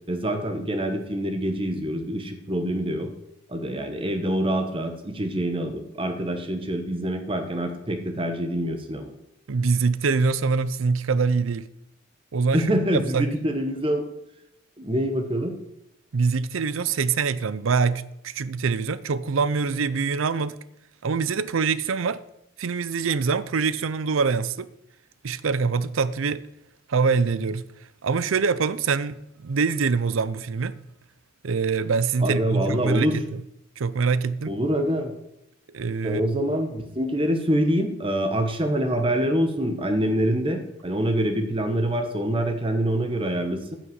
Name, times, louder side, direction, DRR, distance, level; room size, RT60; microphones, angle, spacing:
voice 1, 0.1-3.1 3.5-9.1 12.5-14.0 14.8-15.6 32.2-33.2 34.5-35.1 36.0-43.8, right 1 dB, 25° right, 1.1 m, -25 dB
voice 2, 9.5-11.7 12.3-13.3 16.1-20.6 21.0-22.2 22.6-24.7 25.2-26.4 26.9-27.6 28.0-30.7 31.4-33.4 33.8-34.6 35.7-36.2, right 5 dB, 90° right, 0.5 m, -24 dB
9.5 x 6.1 x 7.9 m
head